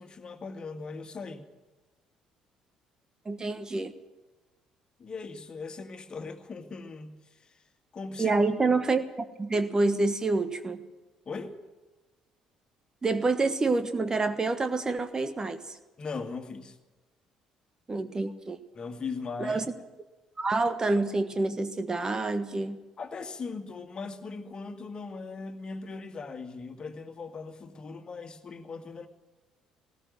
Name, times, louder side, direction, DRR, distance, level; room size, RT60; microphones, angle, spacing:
voice 1, 0.0-1.4 5.0-7.6 7.9-8.4 11.3-11.6 16.0-16.8 18.7-19.6 23.0-29.1, left 4 dB, 35° left, 7 dB, 2.1 m, -39 dB
voice 2, 3.2-3.9 8.2-10.8 13.0-15.8 17.9-18.6 19.4-19.7 20.4-22.8, right 3 dB, 25° right, 11 dB, 1.4 m, -27 dB
19.0 x 18.5 x 7.6 m, 1.2 s
figure-of-eight pair, 50°, 3 cm